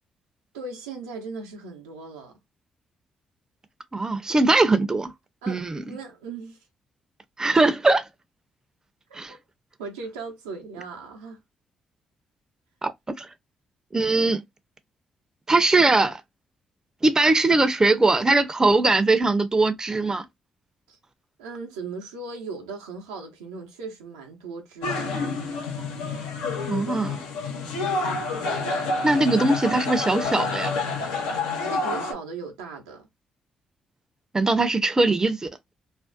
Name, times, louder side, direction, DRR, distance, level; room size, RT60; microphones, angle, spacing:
voice 1, 0.5-2.4 5.4-6.6 9.2-9.4 9.8-11.4 20.9-21.0 21.4-25.2 31.7-33.1, right 4 dB, 90° right, 0.6 m, -38 dB
voice 2, 3.9-5.1 5.5-5.8 7.4-8.0 9.1-9.3 12.8-12.9 13.2-13.3 13.9-14.4 15.5-16.2 17.0-20.2 26.6-27.2 29.0-30.7 34.3-35.5, right 2 dB, 25° right, 0.5 m, -21 dB
sound 1, 24.8-32.1, left 3 dB, 85° left, 0.6 m, -28 dB
2.5 x 2.1 x 2.4 m
hypercardioid pair, 45°, 3 cm